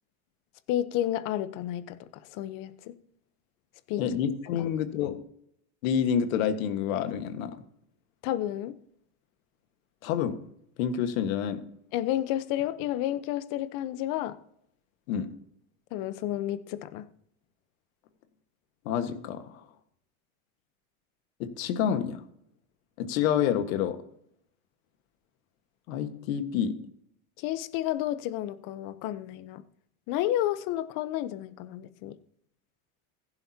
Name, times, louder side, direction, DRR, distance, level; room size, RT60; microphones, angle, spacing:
voice 1, 0.7-2.9 3.9-4.0 4.6-4.7 8.2-8.7 11.9-14.4 15.9-17.1 27.4-29.6 30.1-32.2, left 13 dB, 50° left, 13 dB, 1.0 m, -31 dB
voice 2, 4.0-5.2 5.8-7.5 10.0-10.4 10.8-11.6 15.1-15.3 18.8-19.6 21.4-22.2 23.0-24.0 25.9-26.8, left 8 dB, 75° left, 8 dB, 1.6 m, -28 dB
15.0 x 10.5 x 2.9 m, 0.70 s
supercardioid pair, 130°, 42 cm